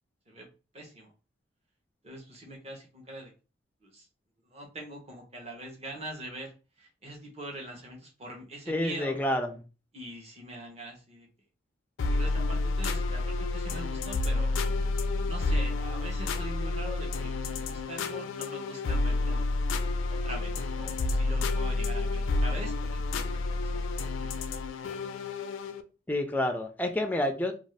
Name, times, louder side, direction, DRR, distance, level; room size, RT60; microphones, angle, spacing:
voice 1, 0.7-1.1 2.0-3.3 3.8-4.1 4.4-9.2 9.9-11.3 12.1-14.5 15.2-19.5 20.1-24.3, right 1 dB, 35° right, 0 dB, 0.9 m, -43 dB
voice 2, 8.7-9.6 26.1-27.5, left 1 dB, 10° left, 4 dB, 0.3 m, -29 dB
sound 1, 12.0-25.8, left 2 dB, 85° left, 0.4 m, -30 dB
2.6 x 2.3 x 3.2 m, 0.33 s
head